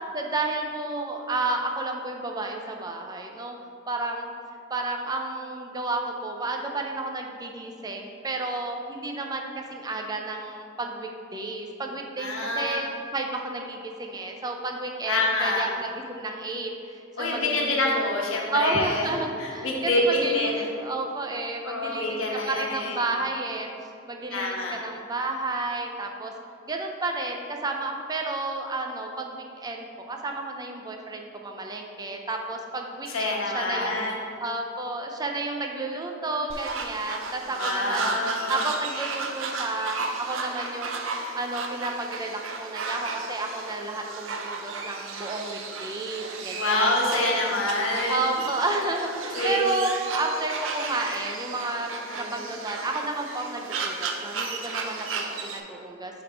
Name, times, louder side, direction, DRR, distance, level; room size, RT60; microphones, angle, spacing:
voice 1, 0.1-3.5 3.9-4.3 4.7-12.3 12.6-17.9 18.5-22.2 22.5-23.7 24.1-26.3 26.7-34.0 34.4-38.1 38.5-41.0 41.3-47.3 48.1-51.9 52.2-56.2, right 2 dB, 20° right, 2 dB, 0.5 m, -31 dB
voice 2, 12.2-12.8 15.1-15.6 17.2-20.5 21.6-23.0 24.3-24.8 33.1-34.2 37.5-38.6 46.5-48.2 49.3-49.6 52.1-52.3, left 2 dB, 75° left, -2 dB, 1.2 m, -26 dB
sound 1, 36.5-55.6, right 4 dB, 70° right, 0.6 m, -34 dB
7.4 x 3.6 x 4.5 m, 2.5 s
head